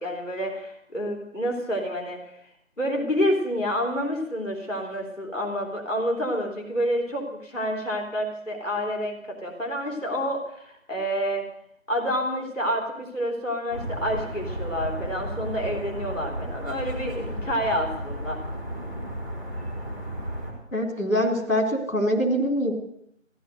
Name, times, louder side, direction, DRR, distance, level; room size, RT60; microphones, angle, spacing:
voice 1, 0.0-2.2 2.8-11.5 11.9-18.4, equal, 65° left, 1 dB, 3.5 m, -28 dB
sound 1, 13.7-20.5, equal, 15° left, 3.1 m, -33 dB
voice 2, 20.7-22.7, equal, 90° left, 2 dB, 3.8 m, -24 dB
16.0 x 10.5 x 7.9 m, 0.72 s
figure-of-eight pair, 175°, 39 cm